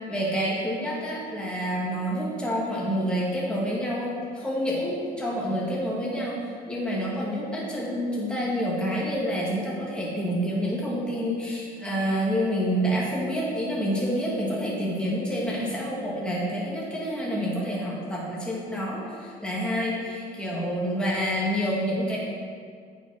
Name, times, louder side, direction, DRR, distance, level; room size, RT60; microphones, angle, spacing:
voice 1, 0.1-6.4 6.7-22.2, equal, 5° left, -5 dB, 2.0 m, -28 dB
8.6 x 5.3 x 5.7 m, 2.1 s
cardioid pair, 110°, 17 cm